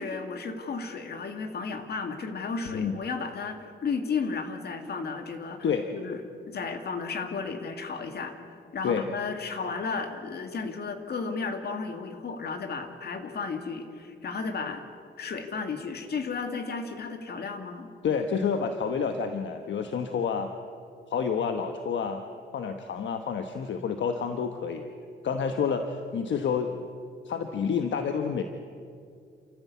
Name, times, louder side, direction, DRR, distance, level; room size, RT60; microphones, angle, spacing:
voice 1, 0.0-5.7 5.9-6.2 6.5-8.3 8.7-14.8 15.2-17.9, left 4 dB, 55° left, 6 dB, 2.1 m, -33 dB
voice 2, 18.0-20.5 21.1-22.2 22.5-24.9 25.2-26.8 27.2-28.4, left 6 dB, 70° left, 6 dB, 1.2 m, -29 dB
29.0 x 14.0 x 8.4 m, 2.3 s
wide cardioid pair, 155°, 20 cm